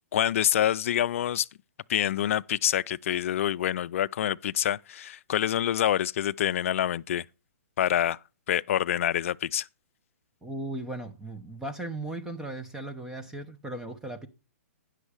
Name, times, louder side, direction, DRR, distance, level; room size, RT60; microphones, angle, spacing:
voice 1, 0.1-1.5 1.9-7.3 7.8-8.2 8.5-9.7, left 11 dB, 60° left, 0.4 m, -26 dB
voice 2, 10.4-14.3, right 2 dB, 5° right, 0.8 m, -37 dB
10.0 x 6.2 x 4.8 m
hypercardioid pair, 140°, 8 cm